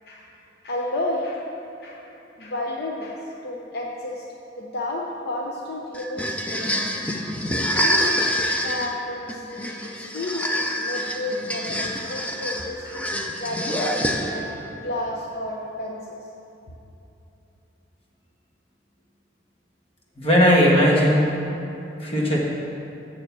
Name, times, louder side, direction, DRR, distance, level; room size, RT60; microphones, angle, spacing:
voice 1, 0.6-1.5 1.8-2.1 2.4-4.3 4.6-7.0 7.7-8.2 8.6-16.3, left 1 dB, 60° left, -1 dB, 0.7 m, -32 dB
sound 1, 5.9-14.6, equal, 10° left, 0.6 m, -26 dB
voice 2, 20.2-21.3 22.0-22.4, equal, 30° left, -3 dB, 1.6 m, -17 dB
7.5 x 6.9 x 6.9 m, 2.9 s
head